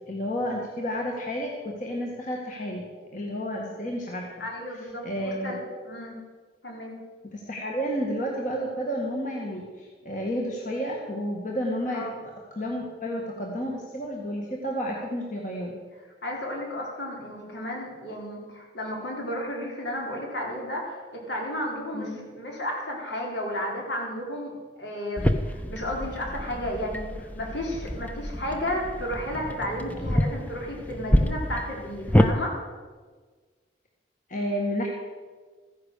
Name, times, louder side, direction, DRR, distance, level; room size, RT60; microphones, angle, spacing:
voice 1, 0.1-2.8 3.1-4.3 5.0-5.6 7.3-12.0 12.6-15.8 21.9-22.2 34.3-34.9, equal, 45° left, -1 dB, 1.8 m, -31 dB
voice 2, 4.4-6.2 6.6-7.0 11.9-12.1 16.2-32.6, left 1 dB, 75° left, -1 dB, 4.1 m, -33 dB
sound 1, 25.2-32.3, equal, 10° left, 0.6 m, -27 dB
14.5 x 10.5 x 6.7 m, 1.4 s
head